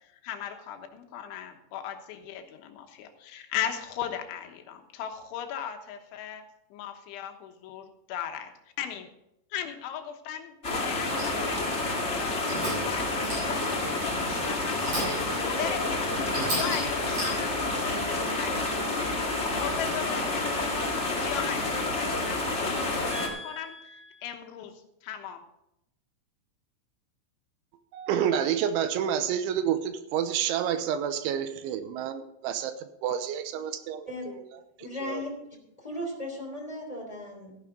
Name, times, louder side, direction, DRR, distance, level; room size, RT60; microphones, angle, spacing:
voice 1, 0.0-6.4 6.7-8.5 8.8-9.1 9.5-12.4 12.9-23.8 24.2-25.4, left 9 dB, 80° left, 5 dB, 3.6 m, -38 dB
sound 1, 10.6-23.3, left 2 dB, 45° left, 0.8 m, -29 dB
sound 2, 11.2-11.5 12.2-13.0 13.2-13.8 14.6-15.4 15.8-15.9 16.3-17.7, right 1 dB, 30° right, 7.0 m, -34 dB
voice 2, 23.1-24.3 34.1-34.3 34.8-37.6, left 1 dB, 10° left, 0 dB, 2.1 m, -38 dB
voice 3, 27.9-32.7 33.0-33.4 33.9-34.1 35.0-35.2, right 9 dB, 85° right, 10 dB, 3.3 m, -28 dB
15.0 x 10.5 x 3.8 m, 0.83 s
omnidirectional pair, 5.4 m